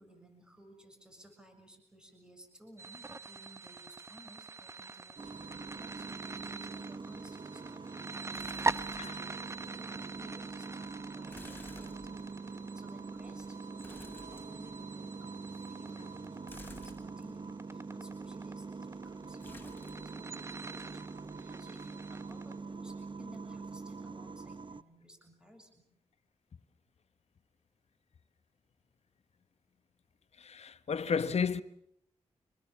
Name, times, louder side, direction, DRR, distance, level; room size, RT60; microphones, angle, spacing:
voice 1, 0.0-9.4 9.8-15.3 15.7-25.9, equal, 5° right, 7.1 m, -58 dB
sound 1, 2.8-22.5, right 3 dB, 25° right, 0.9 m, -43 dB
sound 2, 5.2-24.8, right 4 dB, 45° right, 1.1 m, -44 dB
sound 3, 8.3-9.2 9.6-9.7 11.3-12.6 13.8-14.9 16.5-17.3 19.4-20.1 20.4-21.0 21.3-21.5, left 2 dB, 20° left, 7.0 m, -53 dB
voice 2, 30.4-31.6, left 6 dB, 65° left, 1.2 m, -32 dB
27.5 x 21.0 x 7.4 m
cardioid pair, 65°, 12 cm